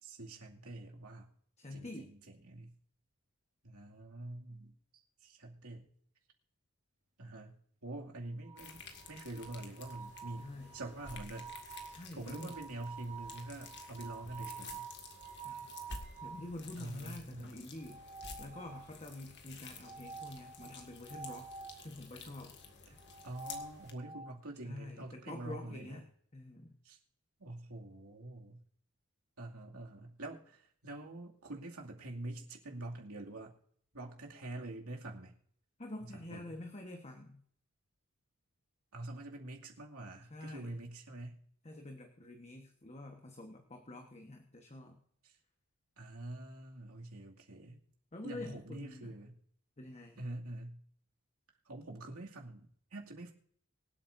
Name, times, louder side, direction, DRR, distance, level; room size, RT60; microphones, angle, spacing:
voice 1, 0.0-1.3 1.7-2.7 3.6-5.9 7.2-7.6 7.8-11.5 12.1-14.9 16.8-17.5 22.9-23.0 23.2-26.0 26.8-27.0 27.4-28.6 29.4-33.5 33.9-35.3 36.0-36.6 38.9-41.4 45.2-45.3 46.0-47.8 48.2-49.4 50.2-50.8 51.7-53.3, right 2 dB, 80° right, 0 dB, 2.4 m, -46 dB
voice 2, 1.6-2.1 10.4-10.8 11.9-12.5 15.4-15.8 16.2-18.0 18.4-21.5 21.8-22.5 24.6-26.1 26.3-26.7 35.8-37.4 40.3-40.8 41.6-45.0 48.1-49.1 49.8-50.2, left 2 dB, 30° left, 4 dB, 1.3 m, -47 dB
sound 1, 8.4-16.5 17.8-19.1 19.8-21.8 23.0-24.4, right 5 dB, 30° right, 1.6 m, -49 dB
sound 2, 8.6-23.9, left 4 dB, 50° left, 2.0 m, -52 dB
24.5 x 8.5 x 2.6 m, 0.63 s
head